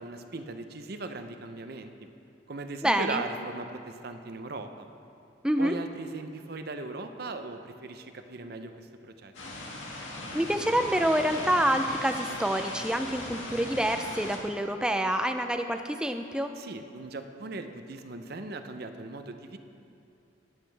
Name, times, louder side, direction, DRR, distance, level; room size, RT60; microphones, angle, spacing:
voice 1, 0.0-1.9 2.5-4.9 5.6-8.9 9.2-9.3 16.5-19.6, right 3 dB, 55° right, 7 dB, 0.6 m, -38 dB
voice 2, 2.8-3.2 5.4-5.8 10.3-16.5, right 1 dB, 5° right, 7 dB, 0.4 m, -27 dB
sound 1, 9.3-14.4, left 2 dB, 75° left, 2.0 m, -38 dB
19.0 x 8.2 x 3.4 m, 2.8 s
head